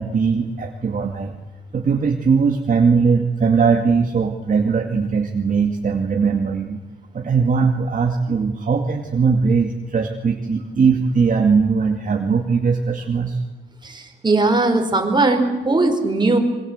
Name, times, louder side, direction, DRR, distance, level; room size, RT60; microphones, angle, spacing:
voice 1, 0.0-1.4 1.7-6.8 7.1-13.4, right 5 dB, 50° right, 2 dB, 2.3 m, -19 dB
voice 2, 13.8-16.4, right 2 dB, 25° right, 3 dB, 4.8 m, -19 dB
26.5 x 23.5 x 8.1 m, 1.1 s
cardioid pair, 105°, 18 cm